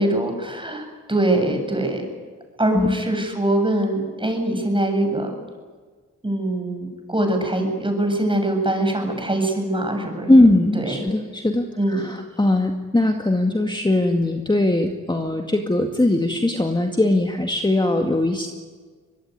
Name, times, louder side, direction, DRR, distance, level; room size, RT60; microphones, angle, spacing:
voice 1, 0.0-2.0 2.6-5.3 6.2-10.3 10.7-11.0 11.8-12.0, right 1 dB, 15° right, 4 dB, 7.4 m, -23 dB
voice 2, 10.3-18.5, left 1 dB, 15° left, 4 dB, 2.1 m, -20 dB
24.0 x 21.0 x 9.5 m, 1.5 s
cardioid pair, 75°, 32 cm